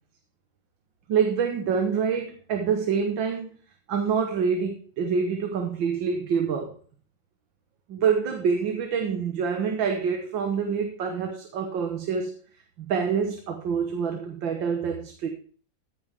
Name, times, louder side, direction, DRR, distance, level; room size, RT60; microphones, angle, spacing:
voice 1, 1.1-3.5 3.9-6.8 7.9-12.4 12.8-15.3, right 6 dB, 75° right, 4 dB, 2.0 m, -26 dB
15.0 x 8.8 x 3.6 m, 0.43 s
omnidirectional pair, 2.1 m